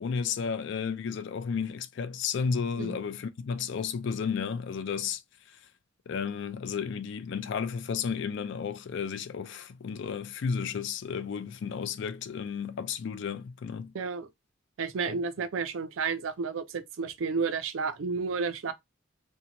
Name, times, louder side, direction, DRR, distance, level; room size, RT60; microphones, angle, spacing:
voice 1, 0.0-5.2 6.1-13.9 15.1-15.2, left 6 dB, 65° left, 0.3 m, -33 dB
voice 2, 13.9-14.3 14.8-18.7, right 5 dB, 80° right, 0.4 m, -31 dB
2.7 x 2.2 x 2.8 m
head